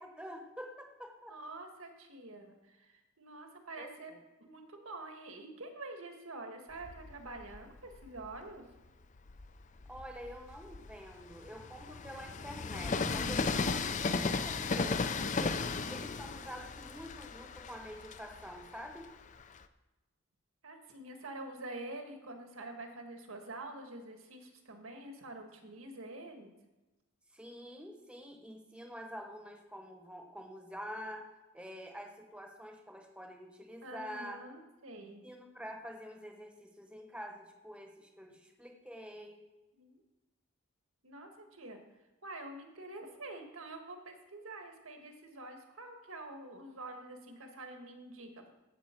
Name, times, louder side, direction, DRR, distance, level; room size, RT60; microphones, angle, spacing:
voice 1, 0.0-1.4 3.8-3.9 9.9-15.6 15.9-19.1 27.3-31.3 31.5-34.4 35.2-39.4, equal, 5° right, 3 dB, 0.9 m, -47 dB
voice 2, 1.3-4.1 4.4-8.6 20.6-26.5 33.8-35.2 39.8-40.0 41.0-41.8 42.2-48.5, right 2 dB, 80° right, 4 dB, 1.6 m, -47 dB
Train, 6.8-8.4 9.0-19.6, left 4 dB, 35° left, 0.5 m, -36 dB
15.0 x 6.6 x 4.4 m, 1.1 s
head